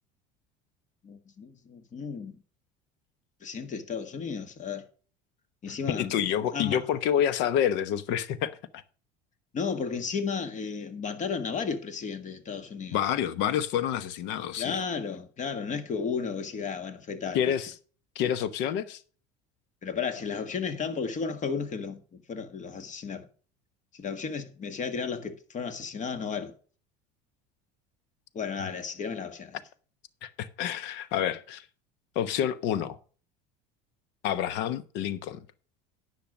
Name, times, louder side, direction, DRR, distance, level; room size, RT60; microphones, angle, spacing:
voice 1, 1.0-2.4 3.4-4.9 5.6-6.8 9.5-13.0 14.6-17.5 19.8-23.3 23.9-26.5 28.3-29.6, left 5 dB, 40° left, 1.7 m, -34 dB
voice 2, 5.9-8.6 12.9-14.8 17.3-17.7 18.1-19.0 30.2-31.6 32.1-33.0 34.2-35.4, left 9 dB, 65° left, 1.0 m, -28 dB
10.5 x 5.8 x 6.2 m
hypercardioid pair, 85°, 20 cm